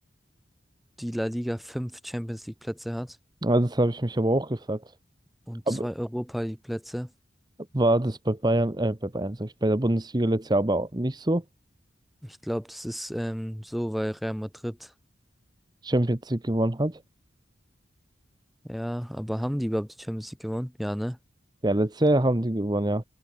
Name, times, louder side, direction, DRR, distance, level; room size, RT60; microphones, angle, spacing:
voice 1, 1.0-3.2 5.5-7.1 12.2-14.9 18.6-21.2, equal, ahead, 2.6 m, -32 dB
voice 2, 3.4-4.8 5.7-5.9 7.7-11.4 15.8-17.0 21.6-23.0, right 1 dB, 20° right, 0.9 m, -24 dB
open air
head